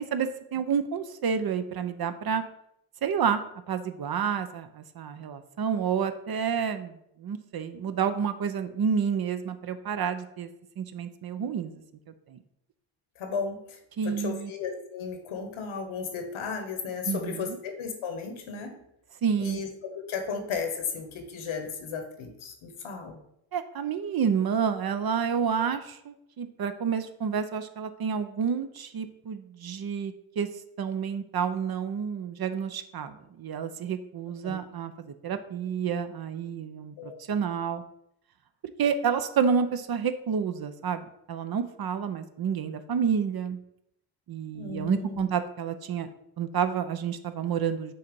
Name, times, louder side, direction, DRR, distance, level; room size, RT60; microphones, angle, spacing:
voice 1, 0.0-2.4 3.0-3.4 3.7-10.5 10.8-11.8 12.3-12.4 14.0-14.5 17.1-17.6 19.2-19.6 23.5-30.5 30.8-37.8 38.8-43.6 44.3-46.1 46.4-47.9, right 7 dB, 50° right, 10 dB, 0.7 m, -29 dB
voice 2, 13.2-18.7 19.4-23.2 34.4-34.6 37.0-37.2 44.5-45.3, left 5 dB, 70° left, 5 dB, 1.3 m, -35 dB
6.5 x 2.8 x 5.2 m, 0.76 s
supercardioid pair, 55°, 48 cm